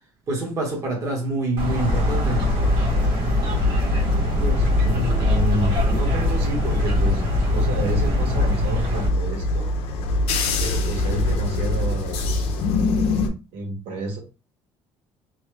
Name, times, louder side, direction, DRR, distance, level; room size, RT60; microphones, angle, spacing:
voice 1, 0.3-2.5, right 2 dB, 30° right, 1.1 m, -26 dB
sound 1, 1.6-9.1, left 2 dB, 55° right, 1.5 m, -23 dB
sound 2, 1.8-13.3, left 1 dB, 75° left, 0.6 m, -24 dB
voice 2, 4.4-7.2 7.5-9.7 10.6-12.6 13.5-14.2, right 2 dB, 85° right, 1.5 m, -29 dB
3.2 x 2.3 x 3.3 m
cardioid pair, 170°, 10 cm